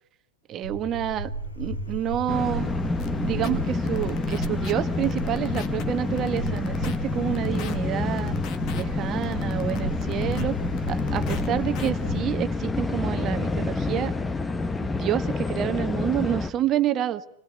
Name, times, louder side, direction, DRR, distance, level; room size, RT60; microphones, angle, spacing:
voice 1, 0.5-1.3 1.6-2.7 3.2-8.4 8.7-10.6 10.9-14.1 14.8-17.3, right 11 dB, 35° right, 10 dB, 1.4 m, -28 dB
sound 1, 0.6-12.2, right 1 dB, 85° left, 4.4 m, -34 dB
sound 2, 2.3-16.5, left 3 dB, 15° left, 1.2 m, -28 dB
sound 3, 3.0-3.1 3.4-3.5 3.9-4.7 5.0-5.8 6.2-7.0 7.3-7.8 8.2-8.8 9.2-10.4 10.8-11.5 11.7-11.9, left 9 dB, 45° left, 2.0 m, -39 dB
27.0 x 19.0 x 9.9 m, 0.74 s
hypercardioid pair, 95°, 0 cm